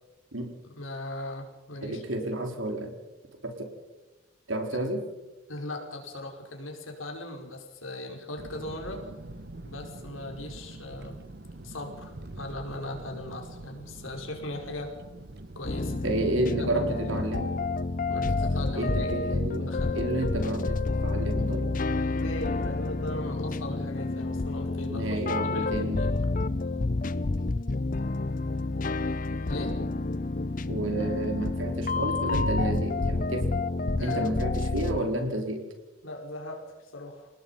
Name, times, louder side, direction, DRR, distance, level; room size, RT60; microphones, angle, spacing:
voice 1, 0.7-2.0 5.5-9.1 9.6-11.2 11.6-14.9 15.5-15.9 16.6-17.1 18.1-19.1 19.6-20.0 22.1-26.1 29.4-29.8 34.0-34.4 36.0-37.3, left 1 dB, 80° left, 2 dB, 5.2 m, -38 dB
voice 2, 1.8-2.9 3.4-3.7 4.5-5.0 16.0-17.5 18.7-21.7 24.9-26.0 30.7-33.5 34.0-35.6, right 1 dB, 75° right, 4 dB, 4.3 m, -31 dB
sound 1, 8.4-16.0, right 2 dB, 50° right, 1.1 m, -44 dB
sound 2, 15.6-35.0, left 3 dB, 40° left, 0.6 m, -29 dB
29.5 x 19.0 x 5.7 m, 1.1 s
head